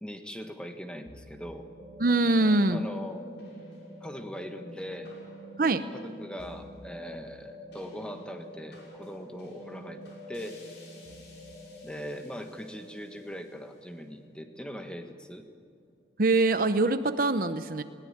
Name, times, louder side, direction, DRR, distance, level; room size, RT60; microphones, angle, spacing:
voice 1, 0.0-1.7 2.7-3.2 4.0-5.1 5.8-10.0 10.3-10.6 11.8-15.5, equal, 5° left, 6 dB, 1.4 m, -40 dB
sound 1, 1.1-15.5, left 1 dB, 75° left, 6.4 m, -47 dB
voice 2, 2.0-2.9 5.6-5.8 16.2-17.8, right 2 dB, 50° right, 11 dB, 0.7 m, -23 dB
21.0 x 18.0 x 8.8 m, 2.3 s
head